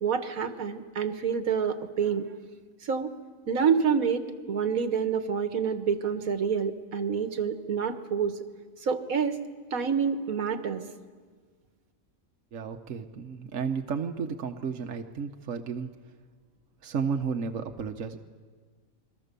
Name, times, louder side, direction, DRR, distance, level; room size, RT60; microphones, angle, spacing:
voice 1, 0.0-2.3 2.8-3.1 3.5-8.4 8.8-9.4 9.7-10.8, right 6 dB, 90° right, 8 dB, 1.9 m, -27 dB
voice 2, 12.5-15.9 16.8-18.2, right 6 dB, 65° right, 5 dB, 1.5 m, -32 dB
28.5 x 23.0 x 6.9 m, 1.5 s
omnidirectional pair, 1.4 m